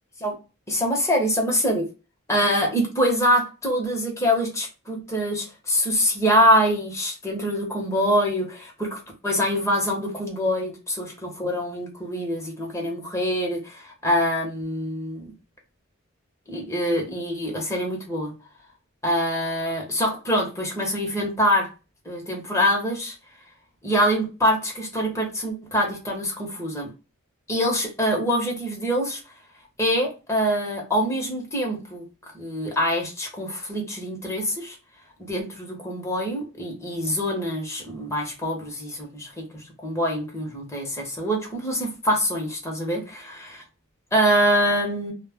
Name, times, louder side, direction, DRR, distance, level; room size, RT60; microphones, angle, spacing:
voice 1, 0.7-1.9 2.3-15.3 16.5-18.3 19.0-21.7 22.0-23.1 23.8-26.9 27.5-29.2 29.8-32.0 32.3-34.8 35.2-43.6 44.1-45.1, equal, 15° left, -1 dB, 0.9 m, -24 dB
2.2 x 2.2 x 3.4 m, 0.30 s
head